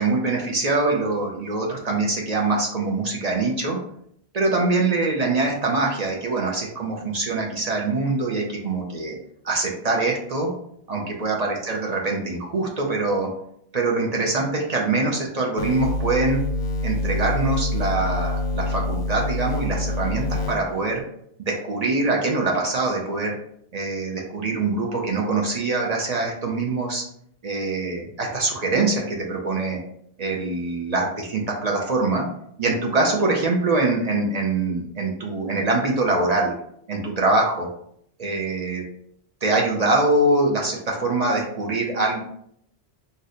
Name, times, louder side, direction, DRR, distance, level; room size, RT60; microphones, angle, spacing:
voice 1, 0.0-3.8 4.3-9.2 9.4-10.5 10.9-13.3 13.7-16.4 16.8-21.0 21.4-23.4 23.7-27.0 27.4-29.8 30.2-32.3 32.6-36.5 36.9-37.7 38.2-38.8 39.4-42.2, right 3 dB, 50° right, -1 dB, 0.5 m, -23 dB
sound 1, 15.6-21.0, left 2 dB, 60° left, 0.6 m, -26 dB
2.7 x 2.1 x 3.6 m, 0.69 s
omnidirectional pair, 1.0 m